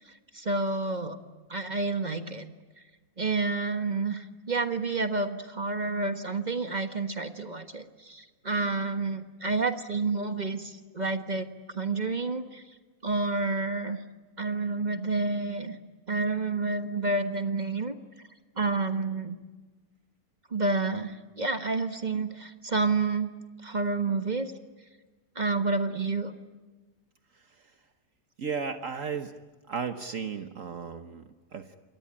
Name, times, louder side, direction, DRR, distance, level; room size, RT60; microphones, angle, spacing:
voice 1, 0.3-1.2 1.5-2.4 3.2-12.6 13.0-14.0 14.4-15.8 16.1-17.9 18.6-19.4 20.5-23.3 23.6-24.5 25.3-26.3, right 3 dB, 30° right, 8 dB, 1.4 m, -29 dB
voice 2, 27.3-27.7 28.4-29.3 29.7-31.8, right 6 dB, 55° right, 8 dB, 1.4 m, -35 dB
28.0 x 22.5 x 8.8 m, 1.3 s
omnidirectional pair, 1.7 m